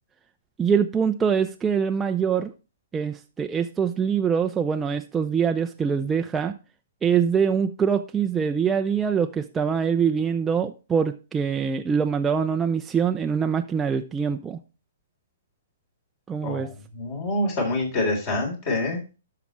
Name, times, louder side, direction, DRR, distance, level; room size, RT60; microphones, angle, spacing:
voice 1, 0.6-2.5 2.9-6.5 7.0-14.6 16.3-16.7, right 7 dB, 15° right, 0.5 m, -24 dB
voice 2, 16.9-19.0, left 2 dB, 40° left, 3.7 m, -26 dB
12.0 x 5.9 x 3.1 m
figure-of-eight pair, 120°, 0 cm